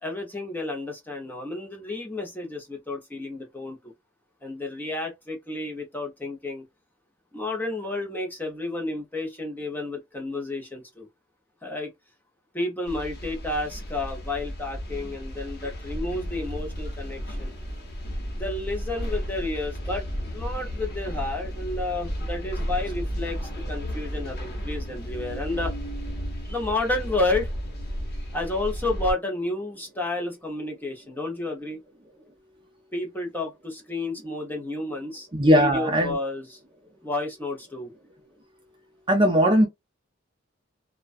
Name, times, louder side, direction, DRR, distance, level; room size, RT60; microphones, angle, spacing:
voice 1, 0.0-3.9 4.4-6.6 7.3-11.1 11.6-11.9 12.5-17.5 18.3-20.0 20.3-23.4 23.7-25.7 26.4-27.5 28.3-31.8 32.9-35.3 35.5-36.6 37.0-37.9, left 2 dB, 10° left, 0.8 m, -31 dB
sound 1, 12.9-29.1, equal, 55° left, 1.0 m, -33 dB
voice 2, 35.3-36.1 39.1-39.7, equal, 25° right, 0.5 m, -19 dB
2.3 x 2.2 x 2.5 m
head